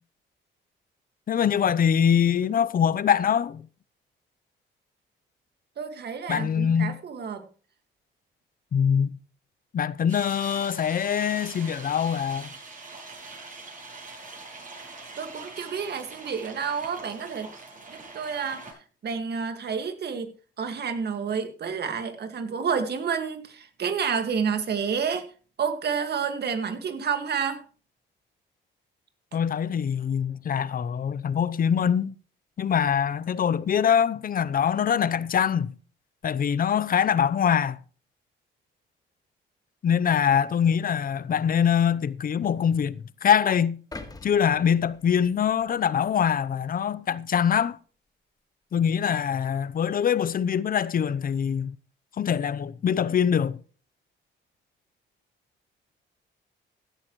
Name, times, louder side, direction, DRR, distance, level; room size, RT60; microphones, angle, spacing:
voice 1, 1.3-3.7 6.3-6.9 8.7-9.2 9.7-12.5 29.3-32.1 32.6-35.7 36.2-37.8 39.8-43.7 44.2-47.8 48.7-51.8 52.2-53.6, left 8 dB, 45° left, 0.7 m, -23 dB
voice 2, 5.8-7.5 15.2-17.5 17.9-18.8 19.0-20.3 20.6-25.3 25.6-27.6, right 6 dB, 55° right, 1.9 m, -29 dB
sound 1, 10.1-18.7, right 3 dB, 40° right, 7.6 m, -43 dB
sound 2, 43.9-46.1 46.6-46.7, left 3 dB, 20° left, 1.8 m, -45 dB
16.0 x 11.0 x 3.1 m
cardioid pair, 90°, 20 cm